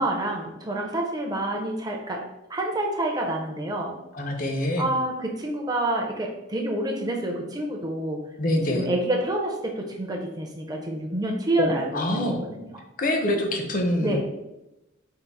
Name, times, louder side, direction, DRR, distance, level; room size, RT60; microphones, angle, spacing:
voice 1, 0.0-4.0 4.8-8.2 8.7-12.7 14.0-14.2, right 1 dB, 20° right, 1 dB, 0.5 m, -28 dB
voice 2, 4.1-4.9 8.4-8.9 11.6-12.4 13.0-14.2, left 1 dB, 40° left, 3 dB, 0.6 m, -25 dB
3.7 x 2.5 x 4.1 m, 0.93 s
head